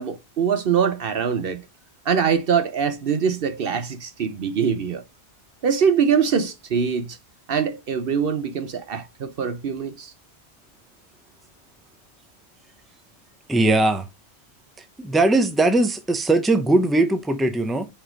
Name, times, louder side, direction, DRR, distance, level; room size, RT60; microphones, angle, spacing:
voice 1, 0.0-1.7 2.0-5.0 5.6-7.2 7.5-10.1, right 7 dB, 60° right, 0.9 m, -23 dB
voice 2, 13.5-14.0 15.0-17.9, right 2 dB, ahead, 0.7 m, -20 dB
5.5 x 4.9 x 5.1 m
omnidirectional pair, 1.1 m